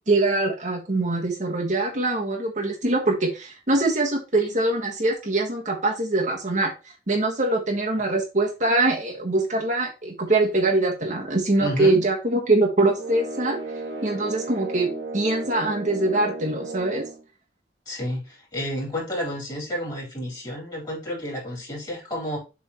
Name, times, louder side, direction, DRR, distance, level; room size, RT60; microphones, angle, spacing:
voice 1, 0.1-6.7 7.1-13.6 14.0-17.1, right 2 dB, 45° right, 1.4 m, -23 dB
voice 2, 11.6-12.0 17.9-22.4, equal, 25° left, 3.7 m, -31 dB
sound 1, 13.0-17.2, right 2 dB, 80° right, 1.7 m, -34 dB
7.3 x 3.7 x 4.2 m
head